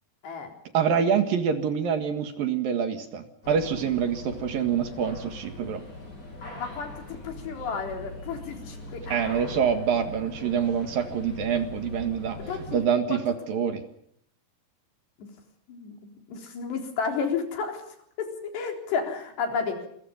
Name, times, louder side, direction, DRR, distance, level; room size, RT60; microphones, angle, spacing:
voice 1, 0.7-5.8 9.1-12.4 12.7-13.8, right 7 dB, 65° right, 8 dB, 3.4 m, -26 dB
sound 1, 3.4-12.8, left 2 dB, 45° left, 9.1 m, -41 dB
voice 2, 6.6-9.5 12.4-13.2 15.2-15.3 15.7-16.0 16.3-17.8 18.2-18.3 18.5-19.9, left 5 dB, 85° left, 4 dB, 6.0 m, -32 dB
27.5 x 23.0 x 5.4 m, 0.69 s
omnidirectional pair, 4.8 m